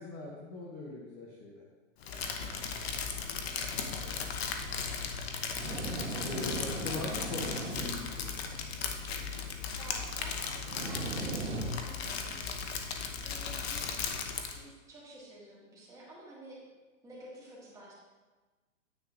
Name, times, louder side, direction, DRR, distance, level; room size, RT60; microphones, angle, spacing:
voice 1, 0.0-1.6 4.0-4.3 6.2-8.3, left 3 dB, 15° left, -2 dB, 0.7 m, -41 dB
Crumpling crinkling, 2.0-14.6, left 6 dB, 50° left, 0.9 m, -37 dB
voice 2, 2.5-3.1 9.7-12.6 13.2-13.9 14.4-16.6 17.0-17.9, right 1 dB, 10° right, -7 dB, 1.8 m, -51 dB
sound 1, 4.5-12.0, right 1 dB, 60° right, 2.0 m, -40 dB
9.7 x 7.7 x 2.5 m, 1.3 s
hypercardioid pair, 150°, 40 cm